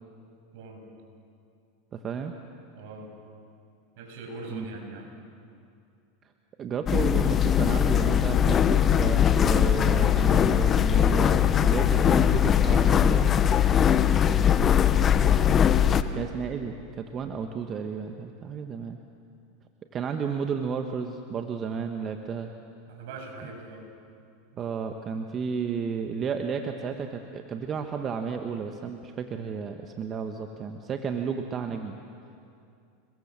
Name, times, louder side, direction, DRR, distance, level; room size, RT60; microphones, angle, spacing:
voice 1, 0.5-0.8 2.7-3.1 4.0-5.1 14.7-15.0 15.7-16.2 22.9-23.9 24.5-24.6, right 3 dB, 65° right, 2 dB, 7.1 m, -42 dB
voice 2, 1.9-2.3 4.5-4.6 6.6-13.3 16.1-19.0 19.9-22.5 24.6-32.0, right 6 dB, 30° right, 5 dB, 1.5 m, -32 dB
sound 1, 6.9-16.0, left 9 dB, 30° left, 1.1 m, -21 dB
29.5 x 21.5 x 7.6 m, 2.5 s
hypercardioid pair, 110°, 0 cm